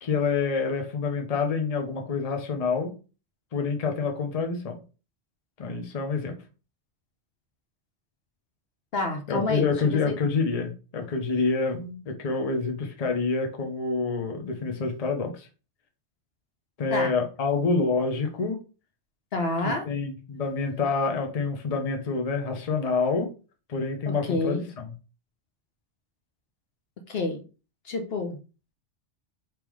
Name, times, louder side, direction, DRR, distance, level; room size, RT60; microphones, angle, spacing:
voice 1, 0.0-3.0 3.5-4.8 5.6-6.4 9.3-15.5 16.8-18.6 19.6-23.3 23.7-24.6, left 4 dB, 40° left, 4 dB, 0.8 m, -27 dB
voice 2, 8.9-10.2 16.9-17.1 19.3-19.9 24.1-24.6 27.1-27.4 27.8-28.4, left 3 dB, 60° left, 5 dB, 1.0 m, -29 dB
3.6 x 3.1 x 4.7 m, 0.34 s
omnidirectional pair, 1.2 m